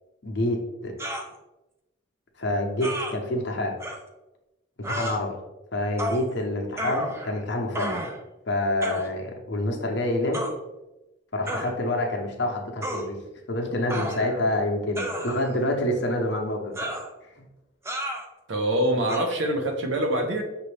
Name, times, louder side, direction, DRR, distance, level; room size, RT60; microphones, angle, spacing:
voice 1, 0.2-0.9 2.4-3.8 4.8-5.4 5.7-8.0 8.5-10.4 11.3-13.2 13.5-16.7 17.4-17.5, left 1 dB, 60° left, 1 dB, 0.7 m, -27 dB
sound 1, 1.0-1.3 2.8-3.1 3.8-4.0 4.8-5.2 6.0-6.3 6.8-7.4 7.7-8.2 8.8-9.1 10.3-10.5 11.5-11.7 12.8-13.1 13.9-14.4 15.0-15.6 16.8-17.1 17.9-18.3 19.1-19.2, right 1 dB, 15° right, 0.4 m, -31 dB
voice 2, 18.5-20.4, right 1 dB, 70° right, 4 dB, 0.7 m, -24 dB
5.9 x 2.7 x 3.2 m, 1.0 s
head